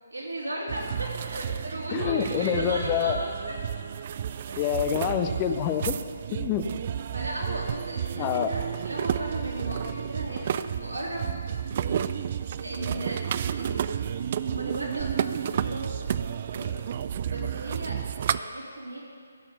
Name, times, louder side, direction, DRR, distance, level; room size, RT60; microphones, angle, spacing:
voice 1, 0.1-3.6 4.5-4.8 7.1-11.3 11.7-13.2 13.5-14.1 14.4-16.2 16.5-16.7 17.3-19.0, right 1 dB, 80° right, -4 dB, 3.5 m, -36 dB
sound 1, 0.7-18.4, right 9 dB, 40° right, 0.3 m, -31 dB
voice 2, 1.9-3.2 4.6-5.9 6.3-6.6 8.2-8.5, left 9 dB, 20° left, 7 dB, 0.6 m, -26 dB
15.5 x 5.9 x 6.7 m, 2.2 s
figure-of-eight pair, 145°, 0 cm